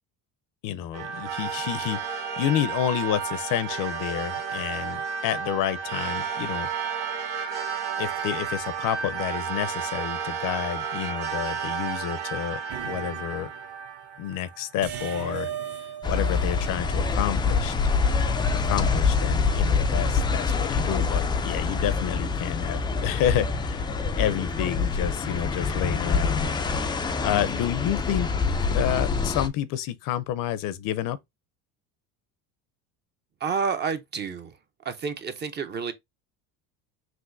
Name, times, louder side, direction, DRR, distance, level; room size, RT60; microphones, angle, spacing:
voice 1, 0.6-6.7 8.0-13.5 14.2-15.5 15.8-17.8 18.5-23.9 24.2-26.5 27.2-28.3 28.7-31.2, left 11 dB, 60° left, 0.6 m, -29 dB
sound 1, 0.9-14.7, right 7 dB, 80° right, 1.5 m, -32 dB
sound 2, 12.7-13.6 14.8-17.6, right 9 dB, 50° right, 1.0 m, -37 dB
sound 3, 16.0-29.5, left 4 dB, 15° left, 0.3 m, -25 dB
voice 2, 33.4-34.5 34.8-35.9, right 5 dB, 25° right, 0.6 m, -29 dB
6.0 x 2.6 x 2.5 m
cardioid pair, 130°, 38 cm